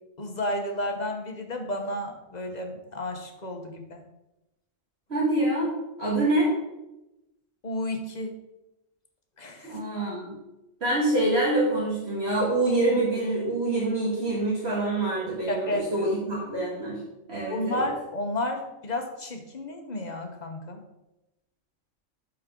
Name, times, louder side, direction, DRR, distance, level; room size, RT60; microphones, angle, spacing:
voice 1, 0.2-4.0 7.6-8.3 9.4-9.8 15.5-16.1 17.5-20.8, left 1 dB, 35° left, 4 dB, 1.0 m, -32 dB
voice 2, 5.1-5.7 6.0-6.5 9.7-10.3 10.8-17.0 17.3-17.9, right 2 dB, 50° right, -6 dB, 2.2 m, -25 dB
11.5 x 4.6 x 3.7 m, 0.95 s
omnidirectional pair, 1.3 m